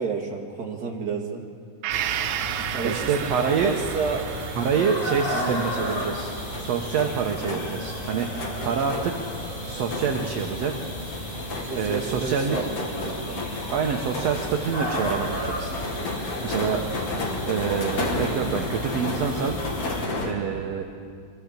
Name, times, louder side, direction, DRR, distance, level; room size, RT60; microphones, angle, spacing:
voice 1, 0.0-1.4 2.5-4.2 5.3-5.7 11.7-13.5, right 5 dB, 30° right, -1 dB, 2.4 m, -31 dB
Gong, 1.8-9.5 9.9-10.0, right 12 dB, 90° right, 2.4 m, -35 dB
sound 1, 1.9-20.1, equal, 15° left, 2.2 m, -34 dB
voice 2, 2.8-3.8 4.6-6.3 6.6-9.2 9.7-10.7 11.8-12.7 13.7-15.8 16.2-16.8 17.4-19.6 20.2-20.8, right 6 dB, 65° right, 3 dB, 1.8 m, -26 dB
sound 2, 5.2-20.3, left 2 dB, 50° left, 2.9 m, -33 dB
24.0 x 14.5 x 7.5 m, 2.2 s
omnidirectional pair, 3.9 m